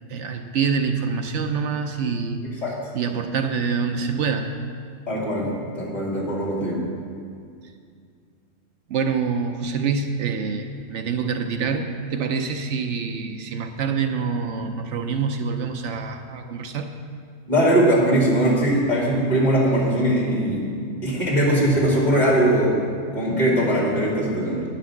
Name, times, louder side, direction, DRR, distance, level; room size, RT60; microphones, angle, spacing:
voice 1, 0.1-2.4 2.9-4.5 8.9-16.9, right 5 dB, 75° right, 6 dB, 0.9 m, -26 dB
voice 2, 5.1-6.9 17.5-20.7 21.0-24.6, right 1 dB, 35° left, -5 dB, 2.5 m, -21 dB
9.8 x 5.8 x 7.0 m, 2.2 s
omnidirectional pair, 1.3 m